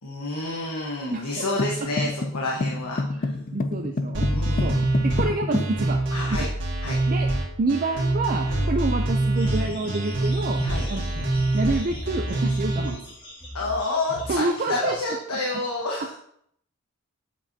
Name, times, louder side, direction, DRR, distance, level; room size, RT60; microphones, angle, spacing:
voice 1, 0.0-3.3 4.3-4.7 6.1-6.5 6.8-7.0 8.5-8.7 10.6-10.9 12.3-12.5 13.5-16.1, left 2 dB, 85° left, -2 dB, 1.2 m, -29 dB
voice 2, 1.1-1.5 3.5-4.3 4.6-4.7 5.0-6.0 7.1-7.3 7.6-10.6 10.9-11.1 11.5-13.0 14.3-14.9, right 3 dB, 40° right, 3 dB, 0.4 m, -27 dB
sound 1, 1.6-5.8, left 2 dB, 35° left, 0.4 m, -29 dB
sound 2, 4.1-12.9, right 2 dB, 55° right, 1.8 m, -25 dB
sound 3, 9.4-15.0, equal, 20° left, 1.4 m, -37 dB
7.4 x 7.3 x 2.8 m, 0.70 s
head